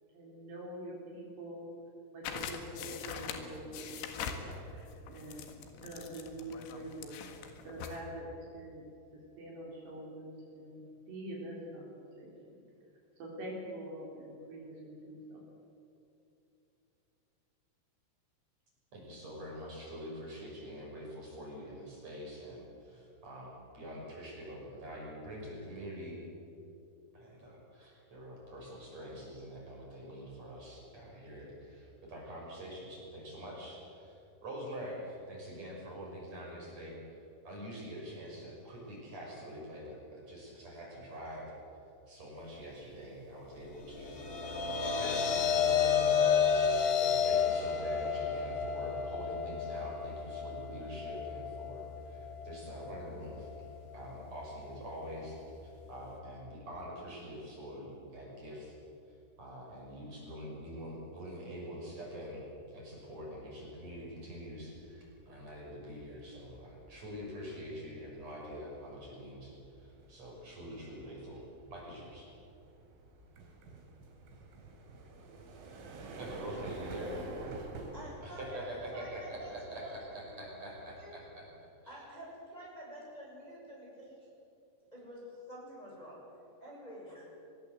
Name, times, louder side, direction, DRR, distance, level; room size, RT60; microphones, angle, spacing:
voice 1, 0.1-1.7 2.1-7.2 7.6-8.8 9.1-11.9 12.2-12.6 13.2-15.4, right 1 dB, 55° right, -3 dB, 5.6 m, -45 dB
sound 1, 2.3-8.0, left 7 dB, 75° left, 4.2 m, -43 dB
voice 2, 18.9-26.2 27.1-41.5 42.1-44.5 45.0-46.7 46.9-53.7 53.9-58.8 59.1-71.4 71.7-72.3 76.2-77.2 78.2-82.0, equal, 35° right, -3 dB, 6.9 m, -45 dB
sound 2, 43.8-56.2, left 7 dB, 50° left, 3.2 m, -32 dB
sound 3, 64.0-64.3 64.7-81.5, right 2 dB, 85° right, 5.9 m, -49 dB
voice 3, 77.9-78.6 78.9-79.5 79.8-79.9 81.0-81.1 81.9-84.3 84.9-87.2, right 1 dB, 5° left, -5 dB, 7.1 m, -48 dB
24.0 x 21.5 x 8.0 m, 2.8 s
omnidirectional pair, 5.8 m